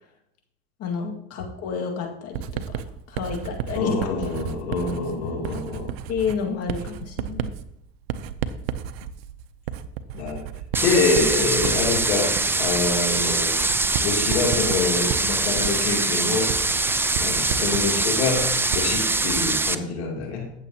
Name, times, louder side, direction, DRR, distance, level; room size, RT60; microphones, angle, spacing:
voice 1, 0.8-2.8 3.1-4.3 6.1-7.6, left 6 dB, 55° left, 2 dB, 2.1 m, -30 dB
Writing, 2.3-19.7, right 9 dB, 75° right, 0.7 m, -33 dB
voice 2, 3.7-5.9 10.1-10.4 10.8-13.6 14.0-16.5 17.2-20.5, left 3 dB, 85° left, -1 dB, 3.1 m, -25 dB
sound 1, 10.7-19.8, right 3 dB, 5° right, 0.5 m, -23 dB
14.5 x 7.0 x 2.9 m, 0.76 s
hypercardioid pair, 90°, 31 cm